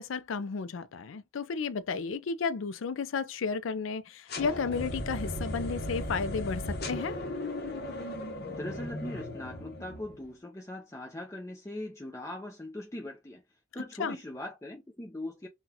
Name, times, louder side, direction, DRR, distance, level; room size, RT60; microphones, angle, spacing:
voice 1, 0.0-7.2 14.0-14.2, left 5 dB, 80° left, 0.4 m, -33 dB
sound 1, 4.3-10.2, left 1 dB, 55° left, 0.8 m, -36 dB
voice 2, 8.5-13.4 13.7-15.5, left 1 dB, 15° left, 0.5 m, -40 dB
3.9 x 2.3 x 2.7 m
head